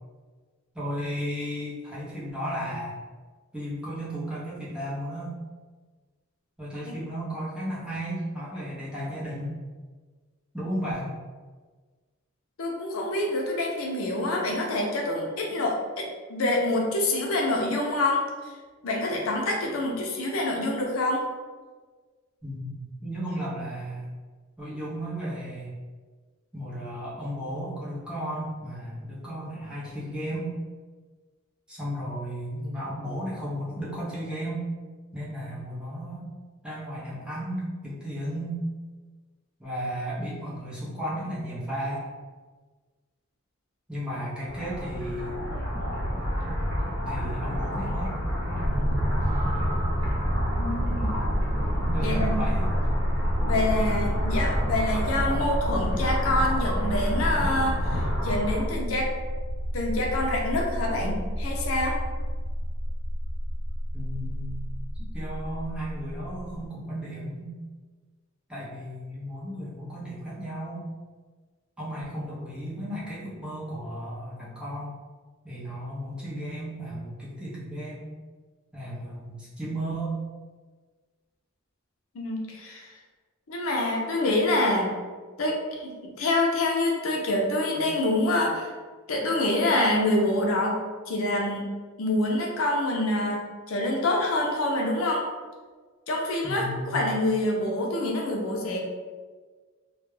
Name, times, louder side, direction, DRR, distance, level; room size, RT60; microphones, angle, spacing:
voice 1, 0.7-3.0 3.5-5.3 6.6-9.6 10.5-11.1 22.4-24.1 24.6-25.7 26.5-30.5 31.7-34.7 35.1-36.3 36.6-38.6 39.6-42.1 43.9-45.6 47.1-48.1 51.9-52.7 63.9-64.5 65.1-67.5 68.5-70.9 71.8-75.0 75.4-78.0 78.7-80.2 96.4-97.0, equal, 5° right, -9 dB, 0.6 m, -34 dB
voice 2, 12.6-18.2 18.8-21.2 50.6-51.2 52.0-52.4 53.5-59.1 59.7-62.0 82.1-82.9 83.5-84.9 85.4-88.7 89.1-90.8 91.1-91.7 92.0-93.4 93.7-95.2 96.1-98.8, left 1 dB, 75° left, 0 dB, 0.5 m, -26 dB
sound 1, 44.5-58.6, equal, 75° right, 1.1 m, -30 dB
sound 2, 48.6-66.7, equal, 35° right, 0.3 m, -29 dB
2.3 x 2.1 x 3.1 m, 1.4 s
head